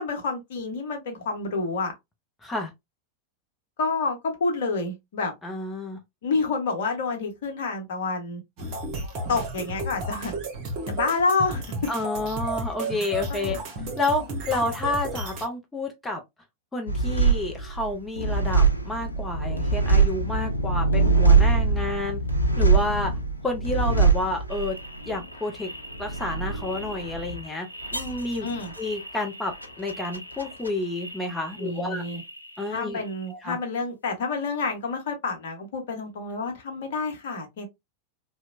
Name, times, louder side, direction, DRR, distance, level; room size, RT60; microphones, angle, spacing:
voice 1, 0.0-1.9 3.8-5.3 6.2-8.4 9.3-10.3 10.9-11.6 13.3-13.6 28.4-28.7 31.6-32.2 32.7-37.7, left 4 dB, 55° left, 0.8 m, -28 dB
voice 2, 5.4-6.0 11.9-13.6 14.0-16.2 16.7-22.2 22.6-23.1 23.4-24.8 25.1-25.7 26.0-27.7 27.9-28.5 28.8-32.0 32.6-33.0 33.3-33.6, left 2 dB, 10° left, 0.5 m, -30 dB
sound 1, 8.6-15.4, right 2 dB, 40° right, 1.0 m, -33 dB
sound 2, 16.9-31.8 32.0-32.8, right 4 dB, 85° left, 0.4 m, -24 dB
2.8 x 2.1 x 2.4 m
figure-of-eight pair, 90°, 0 cm